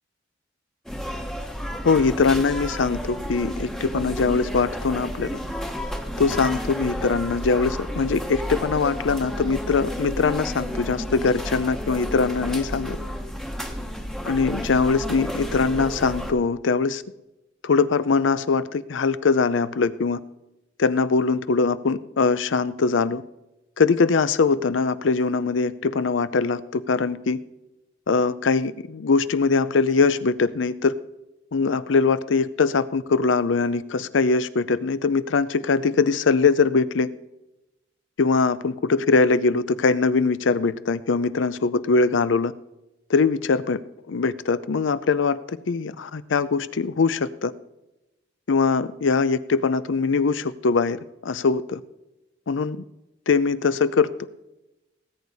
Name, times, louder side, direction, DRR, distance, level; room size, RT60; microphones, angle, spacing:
sound 1, 0.9-16.3, equal, 5° left, 1.0 m, -31 dB
voice 1, 1.8-5.4 6.2-13.0 14.3-17.0 17.6-20.2 20.8-23.2 23.8-27.4 28.1-30.9 31.5-37.1 38.2-42.5 43.1-43.8 44.1-47.5 48.5-51.8 52.5-52.8 53.3-54.1, left 4 dB, 90° left, 15 dB, 0.6 m, -22 dB
18.5 x 8.3 x 4.1 m, 0.97 s
head